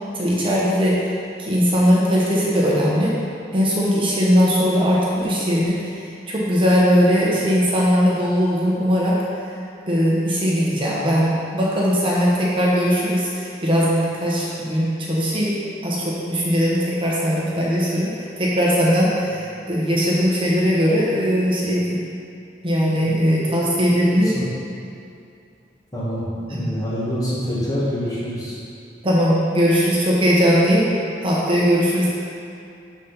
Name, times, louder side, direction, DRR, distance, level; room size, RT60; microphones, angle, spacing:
voice 1, 0.1-1.1 1.4-3.2 3.5-9.2 9.9-15.6 15.8-22.1 22.6-24.4 26.5-26.7 29.0-30.9 31.2-32.1, equal, 30° right, -6 dB, 1.1 m, -19 dB
voice 2, 22.9-24.5 25.9-28.6, equal, 20° left, -8 dB, 1.6 m, -27 dB
11.5 x 4.2 x 4.0 m, 2.5 s
head